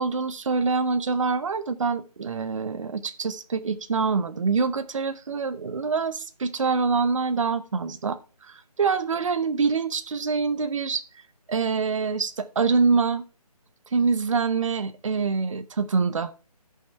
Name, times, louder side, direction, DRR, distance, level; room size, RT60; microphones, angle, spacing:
voice 1, 0.0-11.0 11.5-13.2 13.9-16.3, right 4 dB, 55° right, 0.7 m, -25 dB
13.5 x 5.7 x 3.3 m
figure-of-eight pair, 155°, 20 cm